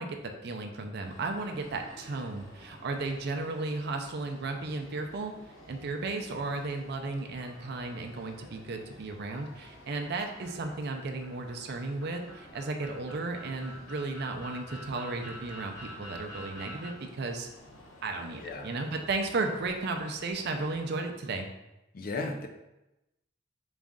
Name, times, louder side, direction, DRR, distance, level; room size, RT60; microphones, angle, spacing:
voice 1, 0.0-5.3 5.7-17.5 18.0-21.5, right 3 dB, 55° right, 4 dB, 0.5 m, -34 dB
sound 1, 1.0-20.9, left 1 dB, 75° left, 0.8 m, -53 dB
sound 2, 10.4-16.9, equal, 15° left, 1.0 m, -47 dB
voice 2, 18.4-18.7 21.9-22.5, left 3 dB, 45° left, 5 dB, 0.4 m, -35 dB
4.0 x 2.4 x 3.6 m, 0.95 s
head